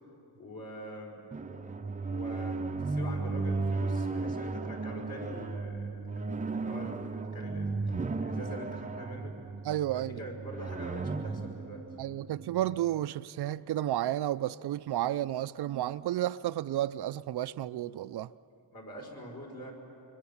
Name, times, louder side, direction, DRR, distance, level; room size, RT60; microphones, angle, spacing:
voice 1, 0.4-1.2 2.1-9.4 9.9-11.8 18.7-19.7, equal, 55° left, 5.4 m, -44 dB
sound 1, 1.3-12.9, right 3 dB, 20° right, 0.5 m, -35 dB
voice 2, 9.6-10.2 12.0-18.3, right 13 dB, 65° right, 0.5 m, -32 dB
25.0 x 24.5 x 7.2 m
wide cardioid pair, 140°, 43 cm